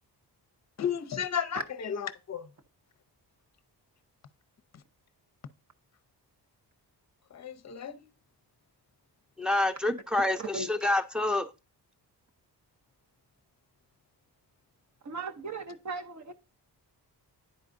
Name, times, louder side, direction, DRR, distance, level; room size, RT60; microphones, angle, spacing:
voice 1, 0.8-2.5 7.3-8.1, left 8 dB, 40° left, 0.6 m, -33 dB
voice 2, 9.4-11.5, left 2 dB, ahead, 0.5 m, -27 dB
voice 3, 10.4-10.7 15.0-16.3, right 3 dB, 45° right, 0.7 m, -37 dB
9.9 x 4.7 x 2.5 m
wide cardioid pair, 160°, 41 cm